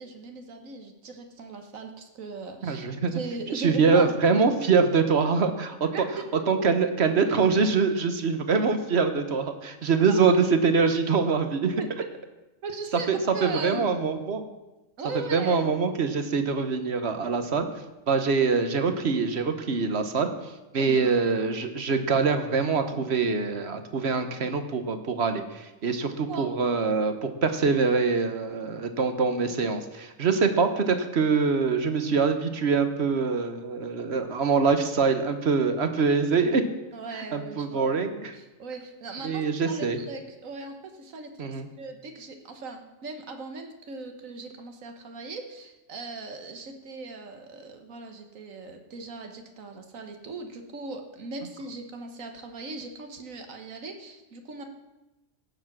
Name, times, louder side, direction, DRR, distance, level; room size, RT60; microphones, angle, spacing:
voice 1, 0.0-4.4 5.8-6.2 6.5-6.7 10.1-10.2 11.8-12.1 12.6-13.9 15.0-15.7 20.8-21.2 21.5-21.7 26.3-26.5 36.9-54.6, right 3 dB, 80° right, 5 dB, 1.6 m, -39 dB
voice 2, 2.6-3.1 3.5-5.9 6.5-11.7 13.1-14.4 15.3-17.7 18.1-20.3 20.7-36.6 37.3-38.3 39.2-40.0 41.4-41.7, right 5 dB, 55° right, 8 dB, 1.3 m, -24 dB
17.0 x 7.3 x 6.0 m, 1.0 s
omnidirectional pair, 1.4 m